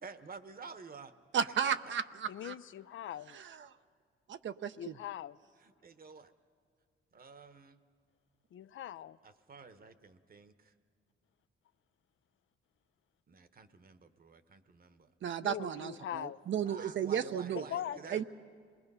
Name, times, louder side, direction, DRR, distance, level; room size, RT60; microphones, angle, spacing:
voice 1, 0.0-1.1 1.5-1.9 5.6-6.3 7.1-7.8 9.2-10.7 13.3-15.1 16.6-18.2, right 5 dB, 45° right, 11 dB, 1.1 m, -50 dB
voice 2, 1.3-2.5 3.3-3.7 4.3-4.9 15.2-17.6 18.1-18.2, right 8 dB, 65° right, 10 dB, 0.7 m, -34 dB
voice 3, 2.3-3.4 4.8-5.4 8.5-9.2 15.4-16.4 17.7-18.0, left 11 dB, 70° left, 15 dB, 0.5 m, -41 dB
26.5 x 20.5 x 5.5 m, 2.2 s
cardioid pair, 80°, 21 cm